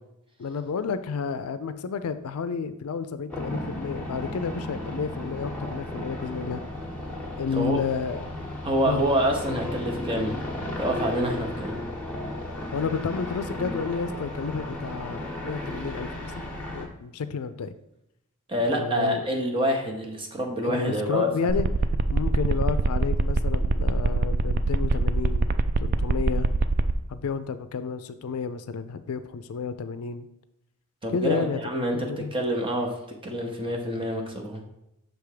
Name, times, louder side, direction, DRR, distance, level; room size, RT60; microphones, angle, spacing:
voice 1, 0.4-6.6 7.4-8.2 8.8-9.1 12.7-17.7 18.7-19.3 20.6-21.7 22.1-25.5 25.8-26.5 27.1-30.3 31.1-31.6 31.9-32.3, left 5 dB, 70° left, 11 dB, 0.4 m, -31 dB
sound 1, 3.3-16.9, left 1 dB, 5° left, 1.1 m, -34 dB
voice 2, 8.6-10.3 10.8-11.8 18.5-21.3 31.0-32.0 32.3-32.9 33.2-34.6, equal, 25° right, 2 dB, 1.0 m, -26 dB
sound 2, 21.5-26.9, right 3 dB, 40° right, 0.3 m, -23 dB
6.3 x 3.5 x 5.0 m, 0.84 s
head